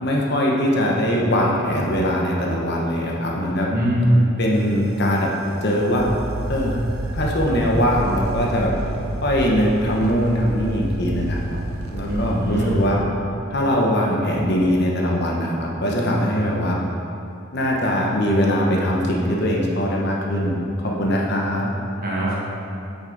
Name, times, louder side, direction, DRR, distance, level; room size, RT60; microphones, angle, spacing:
voice 1, 0.0-3.7 4.4-5.3 5.6-6.0 6.5-6.8 7.1-8.7 9.2-11.6 11.9-13.0 13.5-16.8 17.5-21.7, equal, 50° left, -2 dB, 0.9 m, -21 dB
voice 2, 3.7-4.2 12.1-12.7 22.0-22.3, equal, 45° right, -6 dB, 1.5 m, -20 dB
sound 1, 4.6-13.0, right 1 dB, 90° right, 0.7 m, -30 dB
8.4 x 6.2 x 3.9 m, 2.7 s
head